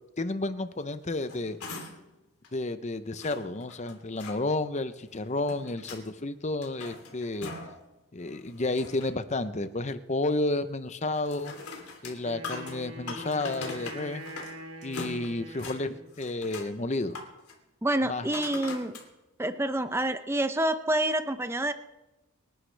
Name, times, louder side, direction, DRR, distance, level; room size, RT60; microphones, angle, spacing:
voice 1, 0.2-1.6 2.5-7.5 8.1-11.5 12.0-14.2 14.8-17.2 18.0-18.3, left 2 dB, 30° left, 11 dB, 0.7 m, -31 dB
sound 1, 1.0-2.1 2.4-2.5 3.2-4.4 5.1-6.1 6.5-7.8 8.2-9.2 11.1-14.6 14.8-15.8 16.1-16.7 17.1-17.6 18.3-19.1 19.7-19.8, left 3 dB, 80° left, 3.2 m, -42 dB
Wind instrument woodwind instrument, 12.2-16.2, right 1 dB, 75° right, 1.6 m, -44 dB
voice 2, 17.8-19.0 19.4-21.7, right 1 dB, 10° right, 10 dB, 0.6 m, -27 dB
26.0 x 11.5 x 3.4 m, 0.98 s
head